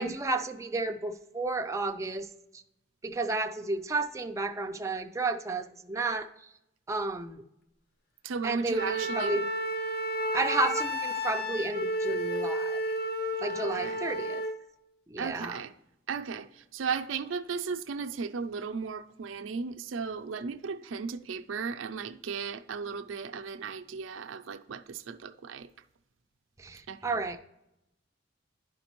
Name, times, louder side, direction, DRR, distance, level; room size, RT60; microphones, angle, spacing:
voice 1, 0.0-2.3 3.0-6.3 6.9-7.4 8.4-9.5 10.3-12.8 13.4-14.4 15.1-15.6 26.6-27.4, right 2 dB, 15° right, 0.4 m, -32 dB
voice 2, 8.2-9.4 13.5-14.0 15.2-15.7 16.1-25.7 26.9-27.0, right 5 dB, 80° right, 0.5 m, -36 dB
Wind instrument woodwind instrument, 8.7-14.6, equal, 55° left, 0.7 m, -31 dB
11.0 x 5.1 x 3.0 m
head